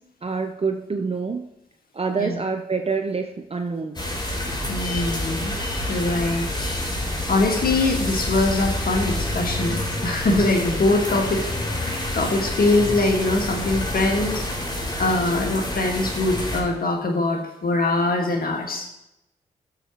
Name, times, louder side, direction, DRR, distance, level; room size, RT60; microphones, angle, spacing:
voice 1, 0.2-1.5 1.9-4.0, right 4 dB, 35° right, 6 dB, 0.8 m, -26 dB
sound 1, 3.9-16.6, left 1 dB, 25° left, 3.8 m, -28 dB
voice 2, 4.7-5.6 5.9-6.5 7.0-9.8 10.0-11.4 11.7-14.6 15.0-18.9, left 2 dB, 60° left, 3 dB, 1.9 m, -23 dB
14.5 x 6.6 x 3.1 m, 0.88 s
supercardioid pair, 40°, 17 cm